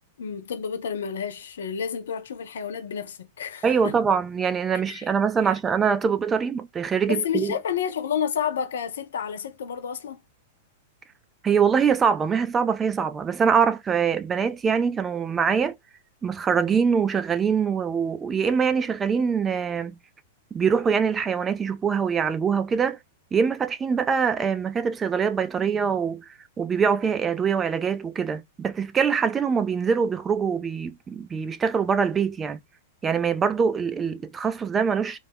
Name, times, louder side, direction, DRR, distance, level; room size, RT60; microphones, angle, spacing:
voice 1, 0.2-4.0 4.9-5.1 5.5-5.6 7.1-10.2, left 7 dB, 70° left, 0.5 m, -30 dB
voice 2, 3.6-7.6 11.4-15.8 16.2-19.9 20.5-23.0 23.3-26.3 26.6-32.6 33.0-35.2, right 6 dB, 20° right, 0.3 m, -23 dB
2.2 x 2.0 x 3.4 m
hypercardioid pair, 100°, 0 cm